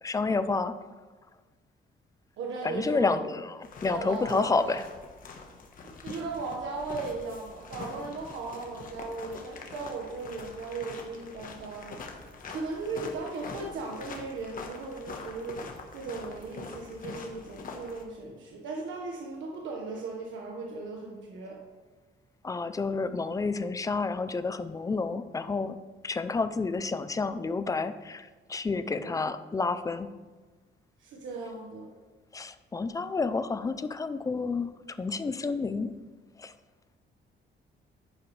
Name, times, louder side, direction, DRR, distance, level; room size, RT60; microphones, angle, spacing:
voice 1, 0.0-0.7 2.6-4.8 22.4-25.8 26.0-30.1 32.3-35.9 36.4-36.5, left 4 dB, 15° left, 11 dB, 0.4 m, -30 dB
voice 2, 2.4-3.2 3.8-4.8 6.0-12.0 12.5-15.6 15.9-21.6 28.9-29.1 31.0-31.9, right 3 dB, 85° right, -1 dB, 1.4 m, -37 dB
March over the desert, 3.6-18.0, left 4 dB, 45° left, 1.3 m, -44 dB
10.5 x 10.0 x 3.3 m, 1.3 s
cardioid pair, 165°, 19 cm